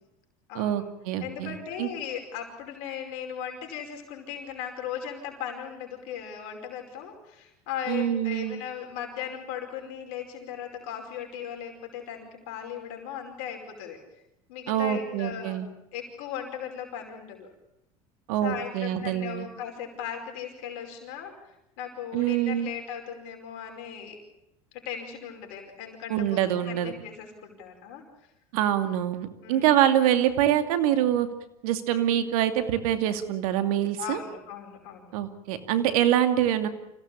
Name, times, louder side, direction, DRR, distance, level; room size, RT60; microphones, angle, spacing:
voice 1, 0.5-1.9 7.9-8.6 14.7-15.7 18.3-19.5 22.1-22.7 26.1-26.9 28.5-31.3 31.6-34.2 35.1-36.7, right 11 dB, 75° right, 8 dB, 2.5 m, -25 dB
voice 2, 1.2-14.0 14.5-15.7 15.9-17.5 18.4-24.2 24.7-28.0 29.4-29.7 34.0-35.1, left 8 dB, 70° left, 3 dB, 5.2 m, -37 dB
26.5 x 17.0 x 8.6 m, 0.87 s
hypercardioid pair, 90°, 18 cm